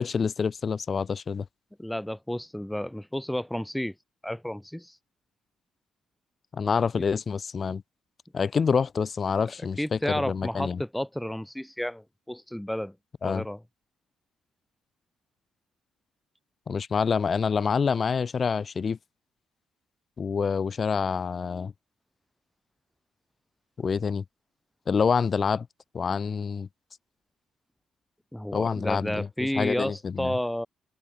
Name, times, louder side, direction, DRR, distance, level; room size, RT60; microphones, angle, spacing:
voice 1, 0.0-1.4 6.5-7.8 8.3-10.8 13.2-13.4 16.7-19.0 20.2-21.7 23.8-24.2 24.9-25.7 25.9-26.7 28.5-30.3, left 5 dB, 40° left, 1.3 m, -27 dB
voice 2, 1.8-3.9 4.2-4.9 9.8-12.9 13.2-13.6 28.3-30.7, left 1 dB, 5° left, 2.5 m, -31 dB
open air
cardioid pair, 90°, 0 cm